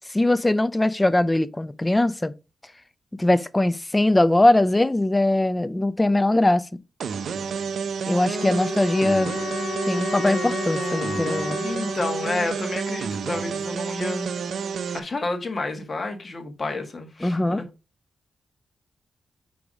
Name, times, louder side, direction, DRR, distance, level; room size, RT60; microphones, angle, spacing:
voice 1, 0.1-2.3 3.2-6.7 8.1-9.3 9.9-11.7 17.2-17.6, left 1 dB, 15° left, 0.4 m, -21 dB
sound 1, 7.0-15.0, right 6 dB, 80° right, 0.5 m, -30 dB
sound 2, 8.3-13.3, left 4 dB, 55° left, 1.7 m, -33 dB
voice 2, 11.6-14.4 14.9-17.6, left 2 dB, 35° left, 1.7 m, -30 dB
5.4 x 4.6 x 5.0 m
wide cardioid pair, 110°, 0 cm